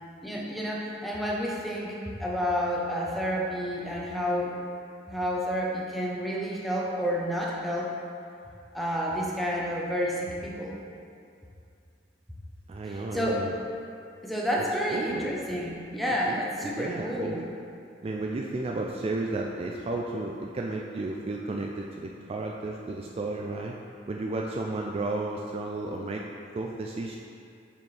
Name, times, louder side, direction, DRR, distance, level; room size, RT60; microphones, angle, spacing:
voice 1, 0.2-4.5 5.1-7.9 8.7-10.8 12.9-13.4 14.2-17.4, equal, ahead, -4 dB, 0.7 m, -30 dB
voice 2, 12.7-13.5 14.9-15.3 16.3-17.4 18.0-23.7 24.1-26.2 26.5-27.2, right 2 dB, 30° right, 0 dB, 0.3 m, -33 dB
6.7 x 4.3 x 3.2 m, 2.4 s
head